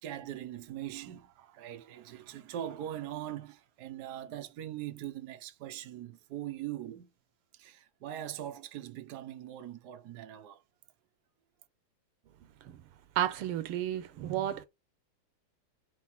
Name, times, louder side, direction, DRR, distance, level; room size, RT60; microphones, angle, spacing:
voice 1, 0.0-7.1 7.5-10.6, right 12 dB, 60° right, 1.2 m, -41 dB
voice 2, 13.2-14.7, right 11 dB, 85° right, 1.7 m, -32 dB
4.8 x 4.2 x 5.8 m
omnidirectional pair, 2.4 m